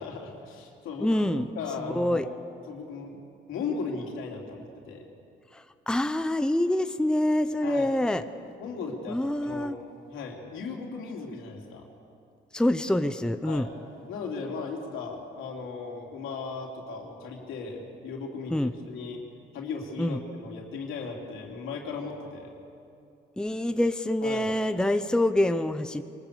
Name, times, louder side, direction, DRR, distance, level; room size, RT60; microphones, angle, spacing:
voice 1, 0.0-1.3 1.6-2.3 2.7-3.2 3.5-5.0 7.6-7.9 8.6-9.7 10.1-11.8 13.4-13.7 14.1-19.2 19.5-22.5 24.2-24.5, left 4 dB, 85° left, 0 dB, 3.5 m, -37 dB
voice 2, 1.0-1.5 1.8-2.3 5.5-8.2 9.1-9.8 12.5-13.7 18.5-18.7 20.0-20.2 23.4-26.0, left 1 dB, 5° left, 9 dB, 0.8 m, -26 dB
23.5 x 20.5 x 6.9 m, 2.6 s
cardioid pair, 90°, 20 cm